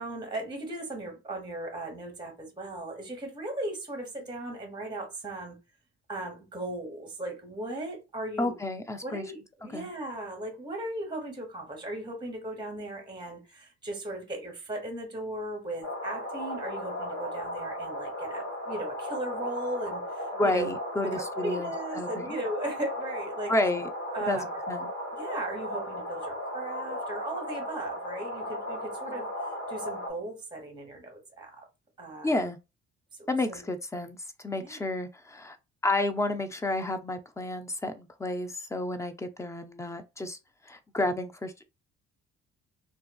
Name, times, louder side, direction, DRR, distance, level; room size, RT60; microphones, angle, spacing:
voice 1, 0.0-5.6 6.1-8.6 9.0-20.7 21.0-23.5 24.1-24.6 25.2-29.3 29.7-31.5 32.0-32.4 33.2-33.7 34.6-34.8, right 1 dB, 15° right, 1.0 m, -37 dB
voice 2, 8.4-9.3 9.7-9.9 20.4-22.3 23.5-23.9 24.2-24.9 32.2-32.6 33.3-34.2 34.4-35.6 35.8-40.4 40.7-41.5, left 2 dB, 10° left, 0.4 m, -30 dB
sound 1, 15.8-30.1, equal, 55° left, 1.5 m, -36 dB
2.4 x 2.3 x 2.3 m
supercardioid pair, 60°, 35 cm